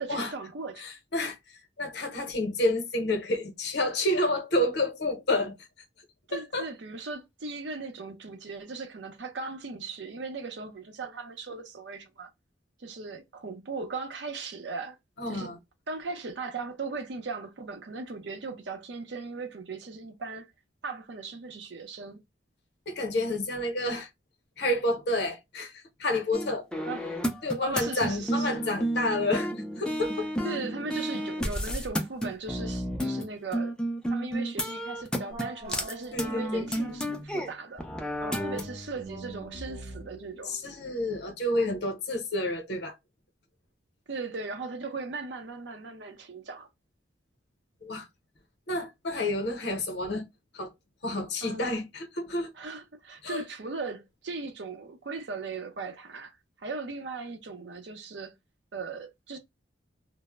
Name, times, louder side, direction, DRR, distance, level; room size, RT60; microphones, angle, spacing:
voice 1, 0.0-0.9 6.3-12.3 12.8-15.0 15.3-15.5 15.9-20.5 20.8-22.2 26.8-27.3 27.6-28.7 30.4-33.7 34.1-37.9 38.2-40.6 44.1-46.7 51.4-51.8 52.5-58.3 58.7-59.4, right 4 dB, 65° right, 0.6 m, -38 dB
voice 2, 0.8-1.4 1.8-5.5 6.3-6.7 15.2-15.6 22.9-24.1 24.6-26.6 27.4-29.5 29.8-30.3 36.1-36.7 40.5-42.9 47.8-48.1 48.7-50.2 50.5-50.7 51.0-52.5 53.2-53.4, left 1 dB, 60° left, 0.7 m, -29 dB
sound 1, 26.3-33.3 33.5-37.5 37.8-38.7, equal, 5° left, 0.3 m, -31 dB
sound 2, 35.3-37.6 38.3-41.7, equal, 30° right, 0.8 m, -44 dB
2.0 x 2.0 x 3.3 m
head